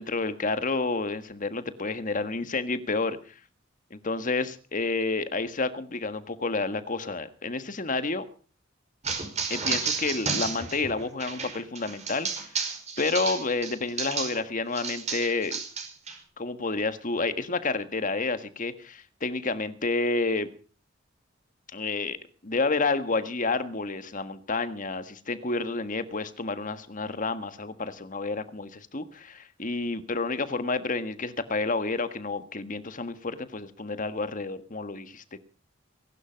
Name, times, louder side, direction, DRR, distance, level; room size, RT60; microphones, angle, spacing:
voice 1, 0.0-3.2 3.9-8.2 9.5-12.3 13.0-15.6 16.4-20.5 21.7-22.2 22.4-35.4, left 3 dB, 45° left, 11 dB, 1.6 m, -30 dB
sound 1, 9.0-14.4 14.7-16.1, right 5 dB, 40° right, 5.2 m, -32 dB
22.0 x 11.5 x 5.2 m, 0.40 s
head